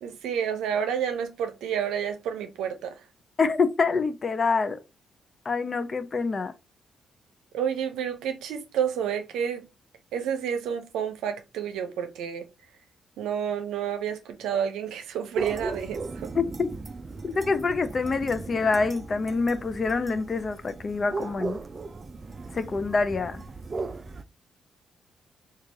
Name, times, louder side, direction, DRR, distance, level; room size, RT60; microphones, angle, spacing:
voice 1, 0.0-3.0 7.5-9.7 10.1-12.5 13.2-16.3, right 8 dB, 90° right, 0.6 m, -30 dB
voice 2, 3.4-4.8 5.5-6.5 16.3-16.7 17.2-21.6 22.5-23.4, left 4 dB, 40° left, 0.5 m, -26 dB
sound 1, 15.3-24.2, right 3 dB, 35° right, 0.4 m, -37 dB
4.6 x 2.4 x 2.8 m
cardioid pair, 80°, 0 cm